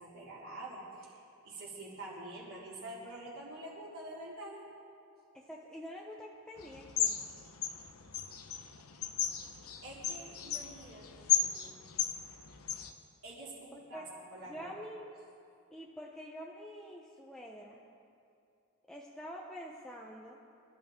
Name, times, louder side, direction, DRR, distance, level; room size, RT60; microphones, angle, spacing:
voice 1, 0.0-4.6 9.8-11.5 13.2-14.7, right 1 dB, 65° right, -6 dB, 4.8 m, -47 dB
voice 2, 5.3-7.2 13.7-14.0 14.4-15.1 15.7-17.8 18.8-20.4, equal, 5° left, -2 dB, 0.9 m, -47 dB
sound 1, 6.6-12.9, left 8 dB, 75° left, 1.0 m, -35 dB
26.0 x 13.0 x 3.8 m, 2.6 s
head